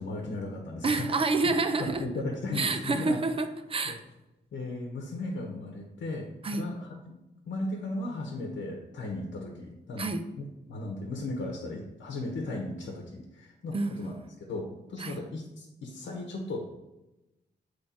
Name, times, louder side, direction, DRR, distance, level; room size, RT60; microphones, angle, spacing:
voice 1, 0.0-1.2 1.8-3.2 3.8-3.9 4.5-6.9 7.5-16.6, left 2 dB, 90° left, 1 dB, 0.9 m, -36 dB
voice 2, 0.8-2.0 2.5-4.0 6.4-6.7 10.0-10.2 13.7-14.2 15.0-15.2, right 3 dB, 30° right, 9 dB, 0.4 m, -28 dB
7.3 x 3.1 x 4.3 m, 0.98 s
wide cardioid pair, 170°, 18 cm